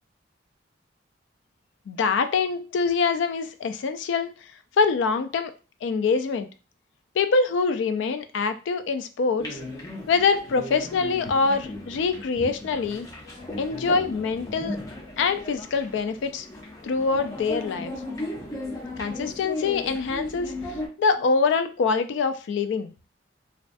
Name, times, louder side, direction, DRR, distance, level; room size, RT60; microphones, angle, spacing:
voice 1, 1.9-4.3 4.8-5.5 5.8-6.5 7.2-9.6 10.1-13.1 13.6-14.8 15.2-16.5 16.8-17.9 19.0-20.6 21.0-22.9, left 4 dB, 80° left, 9 dB, 0.3 m, -24 dB
sound 1, 9.4-20.9, left 1 dB, 20° left, 0.5 m, -36 dB
2.3 x 2.3 x 2.5 m, 0.34 s
head